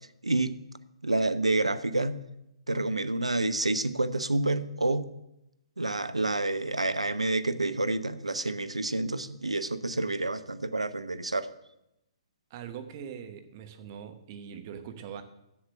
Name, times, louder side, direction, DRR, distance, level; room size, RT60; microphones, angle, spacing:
voice 1, 0.2-0.6 1.0-2.2 2.7-5.1 5.8-11.5, right 2 dB, 90° right, 13 dB, 0.6 m, -28 dB
voice 2, 12.5-15.2, right 8 dB, 40° right, 7 dB, 1.1 m, -42 dB
7.2 x 7.1 x 7.9 m, 0.86 s
figure-of-eight pair, 125°, 3 cm